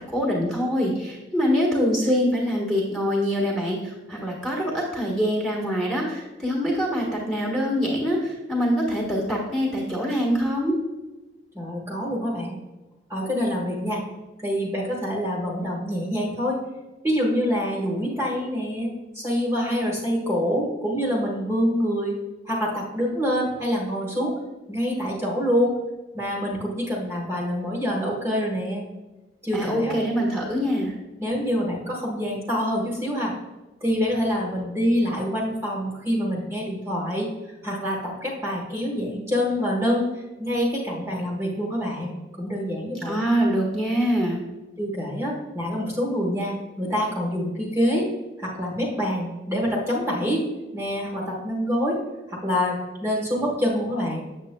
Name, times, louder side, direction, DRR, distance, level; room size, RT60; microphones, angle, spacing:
voice 1, 0.1-10.8 29.5-30.9 43.0-44.4, equal, 5° left, -2 dB, 1.4 m, -24 dB
voice 2, 11.5-12.6 13.1-14.0 14.4-16.6 17.0-22.2 22.4-24.3 24.7-25.7 26.1-28.8 29.4-29.9 31.2-33.3 33.8-37.3 37.6-40.1 40.4-43.2 44.8-48.1 48.4-50.5 50.7-52.0 52.3-54.2, equal, 15° right, -4 dB, 1.4 m, -26 dB
8.0 x 7.5 x 2.2 m, 1.1 s
head